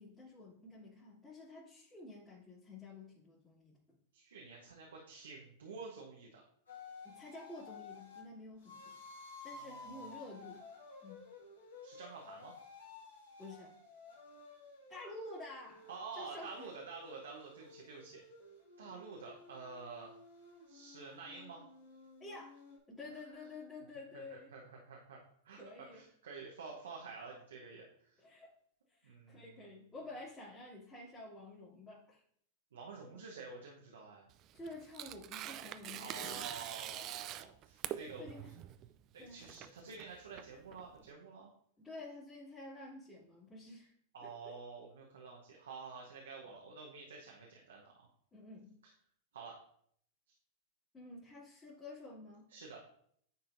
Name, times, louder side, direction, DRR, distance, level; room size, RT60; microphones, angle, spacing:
voice 1, 0.0-4.0 7.0-9.0 9.4-10.6 11.0-11.2 13.4-13.7 14.9-16.7 18.8-19.0 22.2-22.6 22.9-24.5 25.6-26.0 28.2-28.5 28.9-32.2 33.1-33.2 34.5-36.5 38.0-38.5 39.2-39.4 41.8-43.9 44.2-44.6 48.3-48.7 50.9-52.5, left 2 dB, 20° left, -11 dB, 2.4 m, -50 dB
voice 2, 4.1-6.4 9.6-10.2 11.8-12.5 15.9-18.2 18.8-20.1 20.7-21.6 24.1-25.2 25.4-28.2 29.0-29.7 32.7-34.3 35.9-38.3 39.1-41.5 44.1-47.9 49.3-49.6 52.5-52.8, right 4 dB, 80° right, -2 dB, 1.0 m, -49 dB
sound 1, 6.7-8.2 8.6-16.0 16.4-22.8, left 4 dB, 85° left, 1.9 m, -54 dB
Tearing, 34.3-41.1, right 12 dB, 40° right, 0.3 m, -45 dB
9.4 x 4.3 x 2.6 m, 0.66 s
hypercardioid pair, 100°, 0 cm